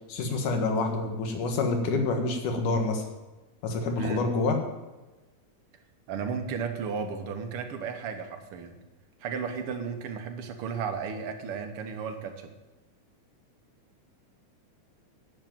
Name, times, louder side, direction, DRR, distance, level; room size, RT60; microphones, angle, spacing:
voice 1, 0.1-3.0 3.6-4.6, left 3 dB, 85° left, 4 dB, 3.1 m, -27 dB
voice 2, 6.1-8.8 9.2-12.5, right 6 dB, 55° right, 6 dB, 1.9 m, -34 dB
10.5 x 7.7 x 9.1 m, 1.1 s
omnidirectional pair, 3.5 m